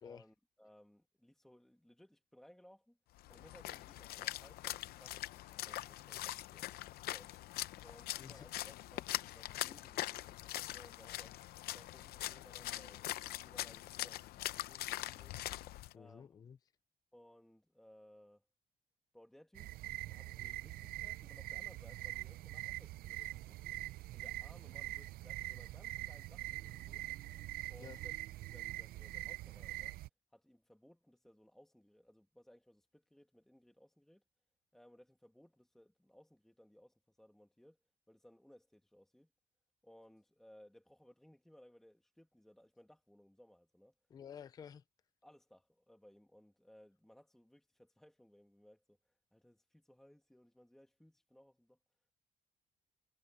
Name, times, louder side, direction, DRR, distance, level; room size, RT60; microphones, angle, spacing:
voice 1, 0.0-3.0 3.3-6.7 7.1-7.3 7.8-11.4 11.7-15.4 15.9-16.3 17.1-18.4 19.1-19.7 20.0-23.8 24.1-27.1 27.7-28.2 28.4-30.0 30.3-34.2 34.7-37.8 38.1-39.3 39.8-43.9 45.2-49.0 49.3-51.8, equal, ahead, 1.5 m, -63 dB
Splash splatter, 3.2-15.9, left 15 dB, 90° left, 0.6 m, -43 dB
voice 2, 15.9-16.6 27.8-28.0 44.1-44.8, left 8 dB, 25° left, 0.4 m, -52 dB
sound 1, 19.5-30.1, right 17 dB, 70° right, 0.5 m, -44 dB
cardioid pair, 170°, 16 cm